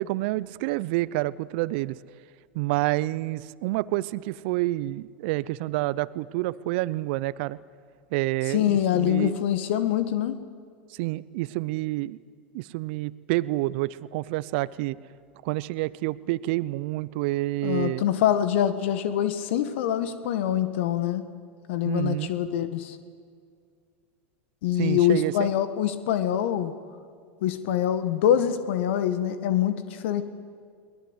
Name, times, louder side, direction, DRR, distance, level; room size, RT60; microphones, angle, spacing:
voice 1, 0.0-2.0 2.5-7.6 8.1-9.3 11.0-12.2 12.5-15.0 15.4-18.0 21.8-22.3 24.8-25.5, right 18 dB, 60° right, 20 dB, 0.7 m, -28 dB
voice 2, 8.5-10.4 17.6-21.2 21.7-23.0 24.6-26.7 27.4-30.2, left 10 dB, 65° left, 12 dB, 1.5 m, -25 dB
23.0 x 19.5 x 8.1 m, 2.1 s
hypercardioid pair, 90°, 7 cm